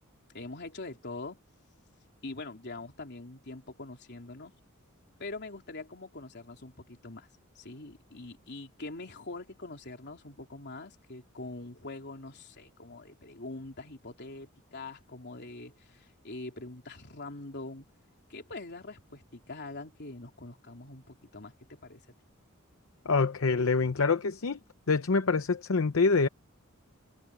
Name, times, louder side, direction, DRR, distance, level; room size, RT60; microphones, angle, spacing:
voice 1, 0.3-1.4 2.2-4.5 5.2-7.3 7.5-17.9 18.3-22.1, left 2 dB, 55° left, 3.4 m, -43 dB
voice 2, 23.1-24.6 24.9-26.3, left 4 dB, 70° left, 0.7 m, -25 dB
head